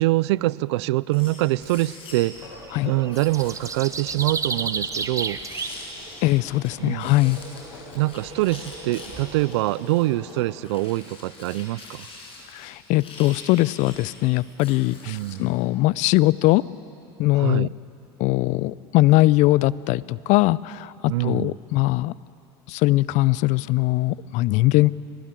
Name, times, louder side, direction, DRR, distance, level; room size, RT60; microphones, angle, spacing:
voice 1, 0.0-2.3 2.8-5.4 6.8-7.1 7.9-12.1 15.1-15.5 17.4-17.7 21.1-21.5, right 19 dB, 75° right, 21 dB, 0.5 m, -24 dB
sound 1, 1.1-2.5 3.1-6.7 7.0-15.3, left 3 dB, 40° left, 6.5 m, -44 dB
sound 2, 2.3-10.5, left 2 dB, 90° left, 5.1 m, -44 dB
sound 3, 2.4-9.4, right 5 dB, 20° right, 1.2 m, -33 dB
voice 2, 6.2-7.4 12.5-16.6 17.2-17.7 18.2-22.1 22.7-24.9, left 18 dB, 60° left, 21 dB, 0.5 m, -21 dB
24.0 x 19.0 x 9.0 m, 2.8 s
hypercardioid pair, 85°, 14 cm